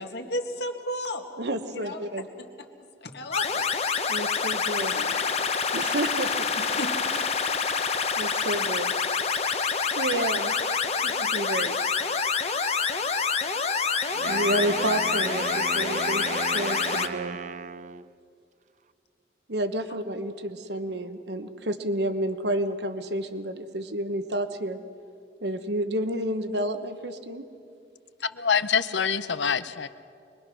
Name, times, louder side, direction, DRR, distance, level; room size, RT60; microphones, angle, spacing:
voice 1, 0.0-1.3 1.7-2.2 3.0-3.7 3.9-4.2 4.9-5.4 6.6-6.9 20.9-21.0, left 1 dB, 65° left, 4 dB, 1.9 m, -34 dB
voice 2, 1.4-2.3 4.1-5.0 5.7-6.6 7.8-11.8 14.2-17.4 19.5-24.8 25.4-27.5, right 1 dB, 65° right, 9 dB, 1.2 m, -30 dB
sound 1, 3.3-17.1, left 5 dB, 35° left, 0.9 m, -27 dB
Wind instrument woodwind instrument, 14.1-18.1, right 5 dB, 40° right, 0.4 m, -35 dB
voice 3, 28.3-29.9, left 6 dB, 85° left, 13 dB, 0.8 m, -25 dB
25.0 x 22.0 x 6.2 m, 2.5 s
head